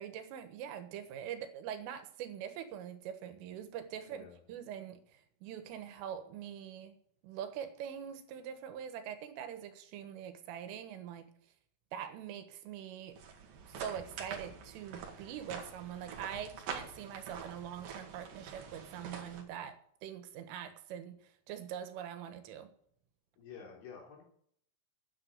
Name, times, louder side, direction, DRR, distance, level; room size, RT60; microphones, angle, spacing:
voice 1, 0.0-7.0 7.2-11.3 11.9-13.2 13.7-21.2 21.5-22.7, right 9 dB, 85° right, 8 dB, 4.0 m, -43 dB
voice 2, 4.0-4.4 23.4-24.2, left 6 dB, 70° left, -1 dB, 5.7 m, -50 dB
sound 1, 13.1-19.4, right 6 dB, 55° right, 3.1 m, -46 dB
9.9 x 9.6 x 8.1 m, 0.65 s
omnidirectional pair, 5.6 m